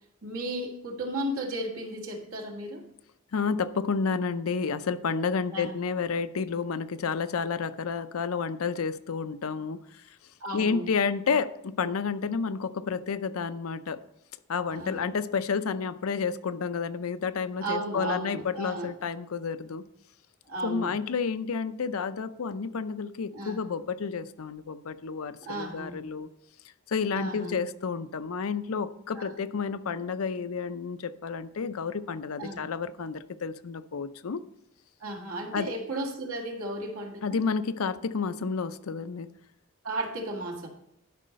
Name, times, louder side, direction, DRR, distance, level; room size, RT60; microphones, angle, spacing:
voice 1, 0.2-2.9 5.5-5.8 10.4-10.9 14.7-15.1 17.6-18.9 20.5-21.0 23.3-23.6 25.4-26.0 27.1-27.6 29.1-29.3 32.4-32.6 35.0-37.4 39.8-40.7, right 1 dB, 80° right, 2 dB, 1.8 m, -34 dB
voice 2, 3.3-10.0 10.5-14.0 14.5-19.8 20.6-26.3 26.9-34.4 35.5-35.7 37.2-39.3, left 5 dB, 80° left, 12 dB, 0.5 m, -30 dB
12.0 x 5.5 x 5.2 m, 0.77 s
head